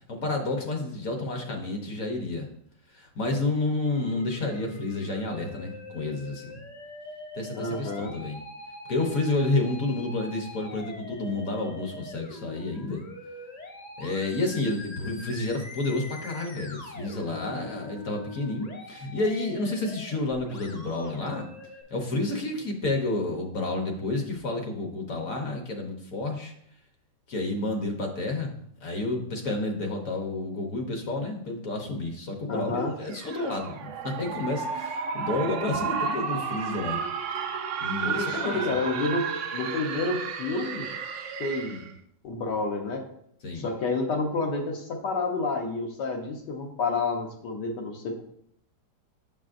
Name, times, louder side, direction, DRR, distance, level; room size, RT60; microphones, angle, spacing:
voice 1, 0.1-2.5 2.9-6.6 7.3-8.4 8.9-13.0 14.0-21.5 21.9-26.5 27.3-28.5 28.8-37.0 37.8-38.6 41.7-41.8 43.4-43.7, left 2 dB, 55° left, 2 dB, 1.2 m, -30 dB
Musical instrument, 3.9-21.8, left 2 dB, 40° left, 0.5 m, -43 dB
voice 2, 7.5-8.1 32.5-32.9 38.0-39.3 39.5-40.9 41.4-41.8 42.2-43.0 43.5-48.2, left 3 dB, 75° left, 2 dB, 1.6 m, -29 dB
sound 1, 33.1-41.9, right 6 dB, 70° right, 0.7 m, -32 dB
7.0 x 6.0 x 2.5 m, 0.70 s
omnidirectional pair, 1.9 m